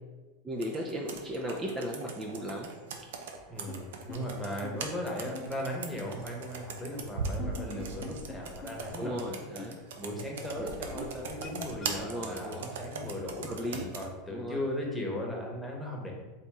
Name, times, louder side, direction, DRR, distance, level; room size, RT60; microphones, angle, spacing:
voice 1, 0.4-2.7 9.0-9.8 10.6-11.4 12.0-12.7 13.5-13.9 14.3-14.6, equal, 20° right, 0 dB, 0.5 m, -36 dB
Computer keyboard, 0.6-14.1, right 4 dB, 75° right, 0.5 m, -40 dB
voice 2, 3.5-9.2 10.0-13.5 13.9-16.1, left 1 dB, 5° left, -2 dB, 1.1 m, -37 dB
sound 1, 3.7-3.8 4.1-4.2 4.6-4.7 5.3-5.4 7.3-8.4 8.6-8.7 9.0-9.1 9.6-9.7 10.3-10.4 10.9-11.0 11.4-11.9, left 6 dB, 35° left, 0.4 m, -43 dB
4.2 x 2.6 x 3.6 m, 1.2 s
hypercardioid pair, 95°, 0 cm